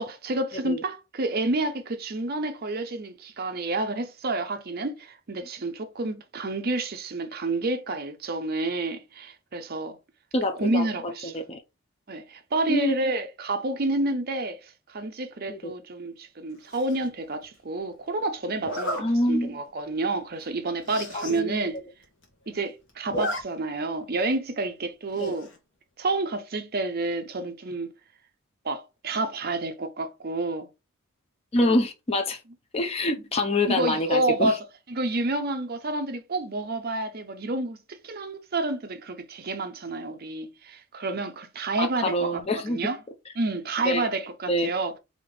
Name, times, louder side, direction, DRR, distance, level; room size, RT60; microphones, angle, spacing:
voice 1, 0.0-10.0 10.5-11.4 12.1-21.8 22.5-25.5 26.0-27.9 28.6-30.7 33.7-43.0 43.4-45.0, right 2 dB, 45° right, 0.6 m, -29 dB
voice 2, 10.3-10.9 11.2-11.6 12.7-12.9 15.5-15.7 19.0-19.6 21.1-21.6 25.2-25.4 31.5-32.4 32.7-34.5 41.8-42.8 43.9-44.1 44.5-44.7, left 1 dB, 30° left, 0.6 m, -26 dB
Zipper (clothing), 16.7-17.1 18.6-19.0 19.6-19.8 20.1-20.2 20.4-20.5 20.8-21.4 21.8-21.9 22.0-22.6 22.9-23.4 23.7-23.8 25.2-25.6, equal, 55° left, 1.1 m, -33 dB
3.5 x 2.8 x 3.8 m
head